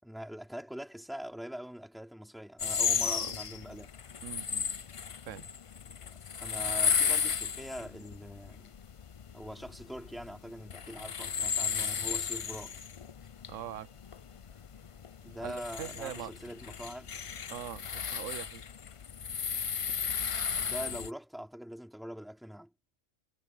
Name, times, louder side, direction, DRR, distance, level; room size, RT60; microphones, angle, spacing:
voice 1, 0.0-3.9 6.4-8.7 9.3-12.7 15.2-17.1 20.5-22.7, equal, ahead, 4.0 m, -43 dB
sound 1, 2.6-21.1, left 7 dB, 50° left, 0.3 m, -34 dB
voice 2, 3.1-3.4 4.2-4.7 5.2-5.4 13.5-13.9 15.4-16.3 17.5-18.6, right 11 dB, 80° right, 1.0 m, -42 dB
omnidirectional pair, 1.3 m